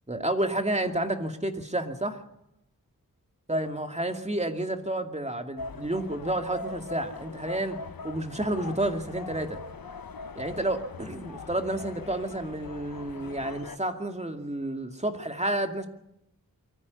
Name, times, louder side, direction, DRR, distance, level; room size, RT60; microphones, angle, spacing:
voice 1, 0.1-2.2 3.5-9.6 10.4-15.9, right 1 dB, 20° right, 5 dB, 2.4 m, -30 dB
sound 1, 5.6-13.8, left 4 dB, 85° left, 1.2 m, -41 dB
24.0 x 15.0 x 8.3 m, 0.80 s
wide cardioid pair, 85°, 34 cm